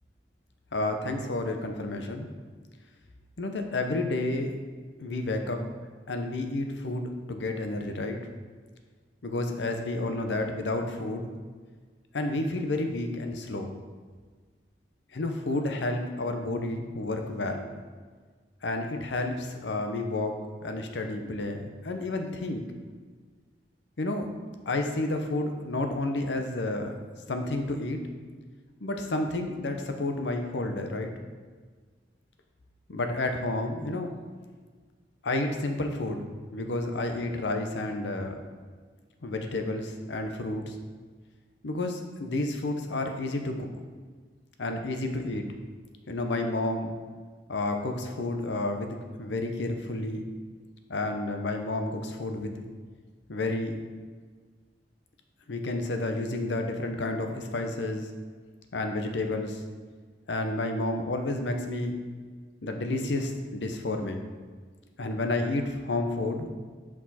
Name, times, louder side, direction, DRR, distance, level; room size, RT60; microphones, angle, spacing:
voice 1, 0.7-2.3 3.4-4.5 5.0-5.6 6.1-8.2 9.2-11.3 12.1-13.7 15.1-17.8 18.6-22.6 24.0-24.3 24.7-26.9 27.3-28.0 28.8-31.1 32.9-34.1 35.2-36.3 36.5-38.4 39.2-40.8 41.6-43.7 44.6-45.4 46.1-46.9 47.5-50.3 50.9-52.6 53.3-53.8 55.5-58.1 58.7-59.6 60.3-61.9 62.6-64.2 65.0-66.5, left 2 dB, 90° left, 5 dB, 0.7 m, -30 dB
6.1 x 4.8 x 4.2 m, 1.5 s
head